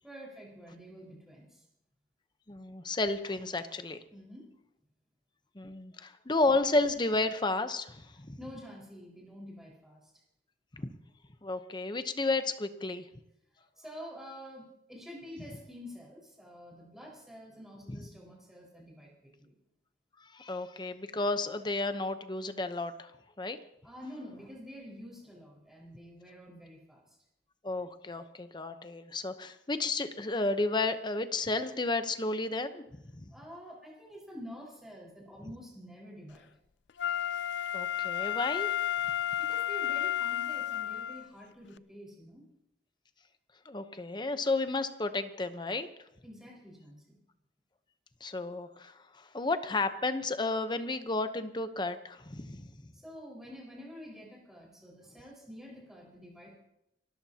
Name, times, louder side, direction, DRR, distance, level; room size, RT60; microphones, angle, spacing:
voice 1, 0.0-1.6 4.1-4.5 8.4-10.1 13.8-19.5 23.8-27.2 33.3-36.5 39.4-42.4 46.2-47.2 52.9-56.7, equal, ahead, -3 dB, 4.9 m, -48 dB
voice 2, 2.5-4.0 5.5-8.4 10.8-10.9 11.4-13.1 17.9-18.0 20.3-23.1 23.4-23.6 27.6-32.9 33.2-33.3 37.7-38.7 43.6-45.9 48.2-52.7, left 2 dB, 25° left, 9 dB, 0.9 m, -32 dB
Wind instrument woodwind instrument, 37.0-41.3 41.8-41.9, left 11 dB, 80° left, 0.5 m, -32 dB
29.5 x 13.5 x 2.9 m, 0.82 s
head